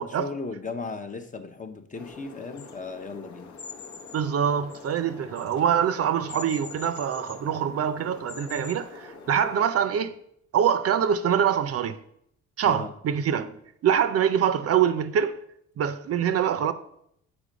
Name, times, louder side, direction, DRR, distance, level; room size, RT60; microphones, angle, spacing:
voice 1, 0.0-3.5 12.6-12.9, left 4 dB, 25° left, 0.6 m, -36 dB
sound 1, 1.9-9.7, left 4 dB, 65° left, 0.9 m, -43 dB
voice 2, 4.1-10.1 10.5-12.0 12.6-15.3 15.8-16.7, right 8 dB, 50° right, 0.5 m, -24 dB
7.0 x 4.5 x 5.0 m
cardioid pair, 90°, 30 cm